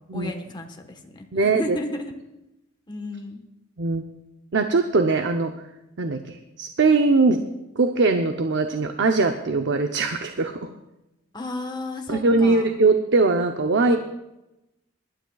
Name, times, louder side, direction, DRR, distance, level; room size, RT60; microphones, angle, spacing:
voice 1, 0.1-2.1 2.9-3.4 11.3-12.7 13.8-14.0, left 2 dB, 25° left, 3 dB, 1.2 m, -33 dB
voice 2, 1.3-1.8 3.8-4.0 4.5-5.5 6.0-7.4 7.8-10.6 12.1-14.0, right 3 dB, 65° right, 6 dB, 0.7 m, -21 dB
23.5 x 12.0 x 2.3 m, 0.96 s
head